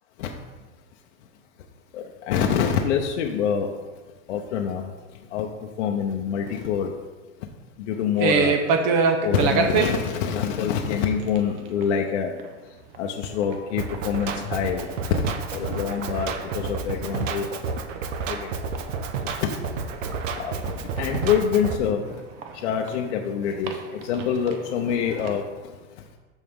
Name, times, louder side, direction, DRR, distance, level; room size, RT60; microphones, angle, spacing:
voice 1, 1.9-3.7 4.3-4.9 5.3-6.9 7.9-8.6 9.2-12.3 13.0-14.9 15.2-17.5 18.3-18.5 19.2-19.5 20.4-22.0 22.5-25.4, left 7 dB, 70° left, 2 dB, 0.9 m, -26 dB
sound 1, 8.2-9.9 11.0-11.4 11.6-11.9 12.4-12.5 12.9-13.0 13.3-14.0 14.3-15.6 15.9-19.2 19.6-23.0 23.4-25.4, right 5 dB, 40° right, 0.9 m, -27 dB
Drum kit, 13.8-21.8, right 5 dB, 85° right, 0.9 m, -31 dB
13.0 x 4.6 x 3.6 m, 1.2 s
supercardioid pair, 140°, 37 cm